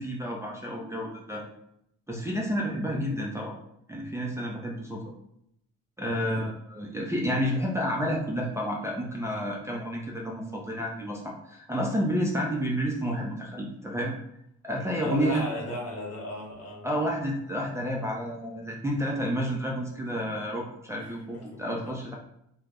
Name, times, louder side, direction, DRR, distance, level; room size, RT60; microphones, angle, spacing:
voice 1, 0.0-1.4 2.1-3.5 3.9-5.0 6.0-14.2 14.6-15.7 16.8-22.1, equal, 10° right, -3 dB, 0.4 m, -30 dB
voice 2, 6.1-6.5 15.0-16.9 21.0-21.1 21.5-21.8, left 1 dB, 55° left, -2 dB, 1.0 m, -36 dB
2.4 x 2.1 x 3.4 m, 0.76 s
cardioid pair, 90°, 30 cm